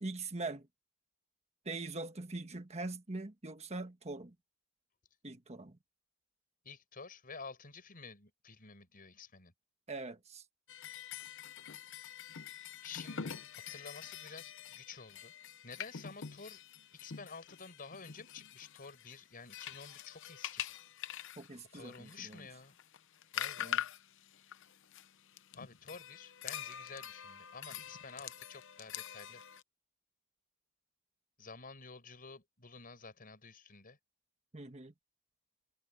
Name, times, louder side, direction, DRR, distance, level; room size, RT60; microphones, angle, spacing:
voice 1, 0.0-0.7 1.6-4.3 5.2-5.8 9.9-10.4 21.4-22.5 23.6-23.8 34.5-34.9, right 3 dB, 30° right, 1.4 m, -42 dB
voice 2, 6.6-9.5 12.8-15.3 15.6-16.6 16.9-20.6 21.7-22.8 23.3-23.8 25.5-29.4 31.4-34.0, left 4 dB, 40° left, 5.2 m, -51 dB
sound 1, 10.7-29.6, left 9 dB, 60° left, 0.8 m, -45 dB
head